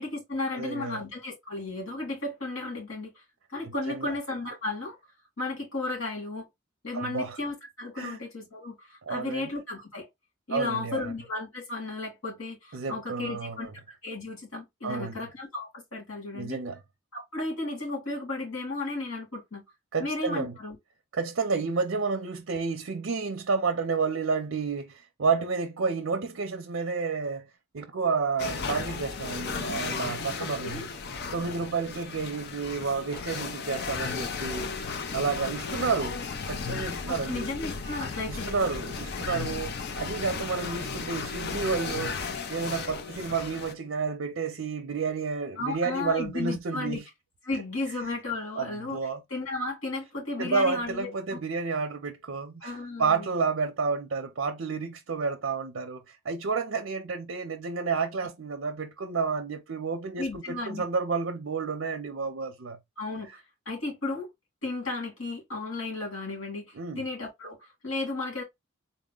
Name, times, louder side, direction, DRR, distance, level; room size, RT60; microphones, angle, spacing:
voice 1, 0.0-3.1 3.5-5.0 5.4-6.5 6.8-10.1 10.5-16.6 17.1-19.6 20.0-20.8 30.4-30.9 36.0-36.3 37.1-38.6 45.6-47.0 47.4-49.0 49.3-51.4 52.6-53.3 60.2-60.9 63.0-63.4 63.7-64.3 64.6-68.4, left 2 dB, 85° left, 2.5 m, -34 dB
voice 2, 0.5-1.0 3.9-4.1 6.9-7.4 8.0-8.2 9.1-9.5 10.5-11.1 12.7-13.7 14.8-15.2 16.3-16.8 19.9-20.5 21.1-27.5 27.7-30.8 31.3-34.7 35.1-36.2 36.5-37.5 38.3-47.0 48.6-49.2 50.4-62.8 66.8-67.0, right 5 dB, 65° right, 0.5 m, -30 dB
sound 1, 28.4-43.7, left 5 dB, 50° left, 0.5 m, -35 dB
3.9 x 2.1 x 3.7 m
head